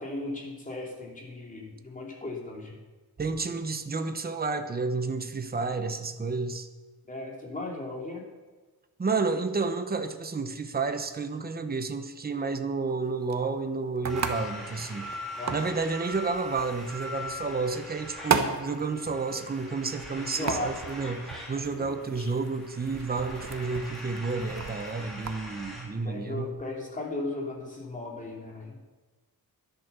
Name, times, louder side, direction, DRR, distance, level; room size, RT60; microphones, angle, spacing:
voice 1, 0.0-2.8 7.1-8.2 15.4-15.6 20.2-20.7 21.8-21.9 22.1-22.3 26.0-28.8, left 2 dB, 20° left, -1 dB, 2.8 m, -36 dB
voice 2, 3.2-6.7 9.0-15.1 15.5-26.5, right 4 dB, 25° right, 7 dB, 1.0 m, -31 dB
sound 1, 12.9-25.4, right 6 dB, 45° right, 1.1 m, -36 dB
sound 2, 14.1-25.8, left 1 dB, ahead, 3.8 m, -42 dB
13.0 x 11.0 x 6.9 m, 1.3 s
wide cardioid pair, 175°, 38 cm